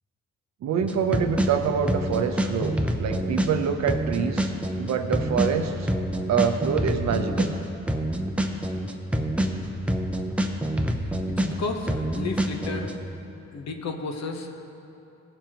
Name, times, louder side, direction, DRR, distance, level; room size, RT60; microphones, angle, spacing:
voice 1, 0.6-4.5 4.8-5.9 6.3-7.5, right 7 dB, 65° right, 7 dB, 0.8 m, -26 dB
sound 1, 0.8-12.9, right 1 dB, 5° right, 0.7 m, -26 dB
voice 2, 11.4-12.9 13.5-14.6, left 3 dB, 60° left, 5 dB, 1.0 m, -32 dB
16.5 x 6.9 x 3.0 m, 2.8 s
cardioid pair, 90°, 30 cm